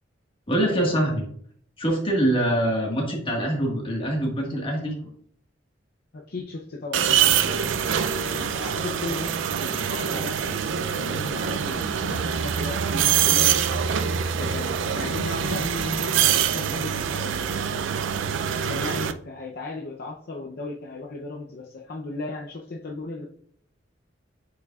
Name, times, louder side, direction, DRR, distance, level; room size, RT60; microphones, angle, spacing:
voice 1, 0.5-1.2 1.8-4.9, right 1 dB, 30° left, 0 dB, 1.6 m, -24 dB
voice 2, 6.1-9.3 9.6-13.7 14.4-17.9 18.7-23.2, left 2 dB, 55° left, 0 dB, 0.6 m, -36 dB
sound 1, 6.9-19.1, right 8 dB, 90° right, 0.4 m, -24 dB
Walk footsteps, 9.6-16.5, right 1 dB, 70° right, 1.4 m, -44 dB
8.3 x 4.7 x 2.4 m, 0.62 s
head